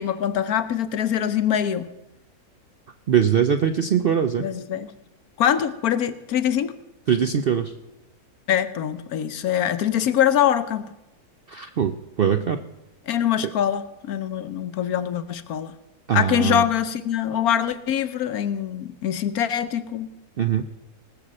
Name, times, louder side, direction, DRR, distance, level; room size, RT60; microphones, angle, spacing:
voice 1, 0.0-1.9 4.4-4.9 5.4-6.7 8.5-10.9 13.1-15.7 16.1-20.1, left 9 dB, 70° left, 12 dB, 1.3 m, -23 dB
voice 2, 3.1-4.4 7.1-7.7 11.5-12.6 16.1-16.6 20.4-20.6, right 8 dB, 60° right, 8 dB, 0.6 m, -21 dB
19.0 x 6.6 x 7.5 m, 0.96 s
omnidirectional pair, 1.7 m